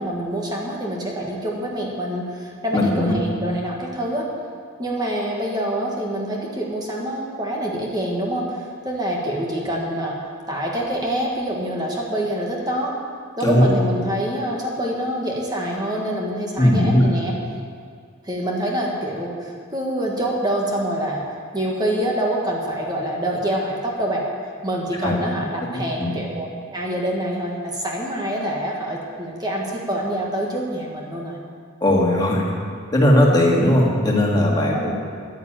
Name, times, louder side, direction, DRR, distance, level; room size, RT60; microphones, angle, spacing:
voice 1, 0.0-4.2 4.8-10.1 10.5-12.9 13.4-17.3 18.2-21.2 21.5-24.2 24.6-31.4 34.6-34.9, right 1 dB, 20° right, -2 dB, 1.8 m, -26 dB
voice 2, 2.7-3.2 13.4-13.6 16.6-17.1 25.0-25.2 26.0-26.2 31.8-32.4 32.9-34.9, left 1 dB, 20° left, -3 dB, 2.2 m, -17 dB
11.5 x 9.5 x 8.9 m, 2.1 s
head